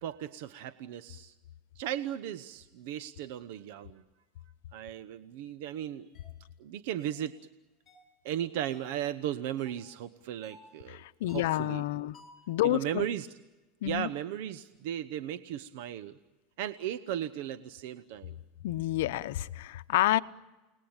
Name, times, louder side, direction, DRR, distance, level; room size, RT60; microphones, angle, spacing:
voice 1, 0.0-1.3 1.8-4.0 4.7-6.1 6.6-7.3 8.2-11.8 12.6-13.3 13.8-16.2 16.6-18.4, right 11 dB, 70° right, 13 dB, 0.9 m, -36 dB
sound 1, 6.1-6.3 7.0-7.3 7.9-8.1 8.7-9.0 9.6-9.9 10.4-10.7 11.3-11.6 12.1-12.5, left 1 dB, 20° left, 7.4 m, -56 dB
voice 2, 10.9-12.2 12.5-13.1 13.8-14.1 18.6-20.2, left 16 dB, 80° left, 14 dB, 0.8 m, -29 dB
29.5 x 19.5 x 8.9 m, 1.1 s
supercardioid pair, 135°, 0 cm